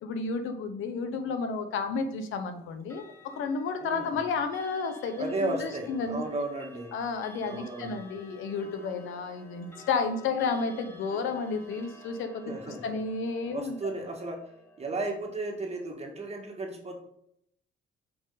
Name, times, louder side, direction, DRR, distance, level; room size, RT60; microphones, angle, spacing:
voice 1, 0.0-6.2 6.9-12.5 12.8-14.0, left 4 dB, 85° left, 8 dB, 1.0 m, -32 dB
Clock, 2.8-15.9, left 1 dB, 15° left, 1.7 m, -52 dB
voice 2, 3.8-4.2 5.2-6.9 7.4-8.0 12.5-13.0 13.5-14.4 14.8-17.0, right 2 dB, 30° right, 0 dB, 1.9 m, -34 dB
6.0 x 5.1 x 4.0 m, 0.74 s
cardioid pair, 90°, 20 cm